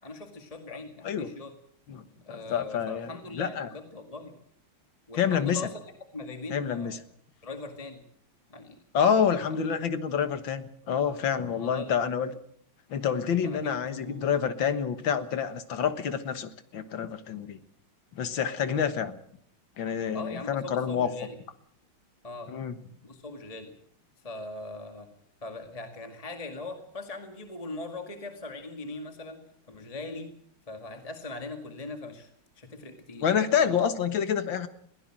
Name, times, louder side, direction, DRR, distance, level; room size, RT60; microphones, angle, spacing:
voice 1, 0.0-1.5 2.2-4.4 5.1-5.8 6.1-7.0 7.4-8.0 8.5-8.8 9.5-9.7 11.6-11.9 13.4-14.5 20.1-21.4 22.2-22.5 23.0-23.8 24.2-25.1 25.4-29.4 29.7-30.3 30.7-32.3 32.6-33.3 33.6-33.8, left 2 dB, 15° left, 5 dB, 1.9 m, -40 dB
voice 2, 2.3-3.1 3.4-3.7 5.1-5.6 6.5-7.0 8.9-12.3 12.9-17.6 18.2-19.2 19.8-21.1 22.5-22.8 33.2-34.7, left 7 dB, 65° left, 11 dB, 2.0 m, -27 dB
22.0 x 16.5 x 7.6 m, 0.66 s
omnidirectional pair, 2.4 m